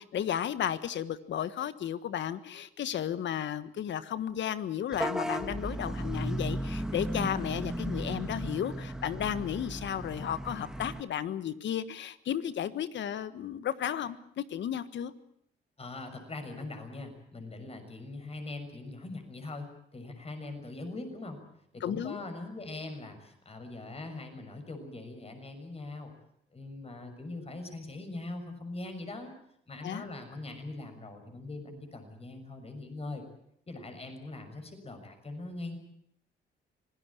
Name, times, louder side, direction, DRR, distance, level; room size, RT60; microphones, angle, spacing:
voice 1, 0.0-15.1 21.8-22.2 29.8-30.0, left 10 dB, 70° left, 14 dB, 1.5 m, -34 dB
Vehicle horn car horn honking / Bus, 4.9-11.0, right 1 dB, 5° right, 1.7 m, -35 dB
voice 2, 15.8-21.4 21.7-26.1 26.5-29.3 29.7-33.2 33.7-35.8, left 2 dB, 30° left, 7 dB, 6.5 m, -41 dB
25.5 x 18.5 x 8.6 m, 0.70 s
cardioid pair, 90°, 20 cm